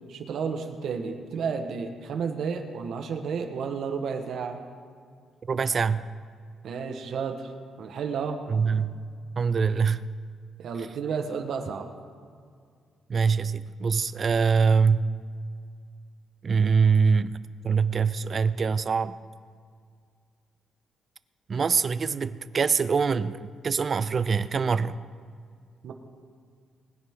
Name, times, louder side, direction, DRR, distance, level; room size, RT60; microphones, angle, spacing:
voice 1, 0.1-4.6 6.6-7.5 7.8-8.4 10.6-11.9 25.8-25.9, right 6 dB, 65° right, 5 dB, 1.4 m, -31 dB
voice 2, 5.4-6.1 8.5-9.0 9.4-10.1 13.1-15.0 16.4-19.1 21.5-25.0, right 5 dB, 35° right, 15 dB, 0.4 m, -24 dB
20.5 x 10.5 x 3.8 m, 2.1 s
cardioid pair, 135°, 0 cm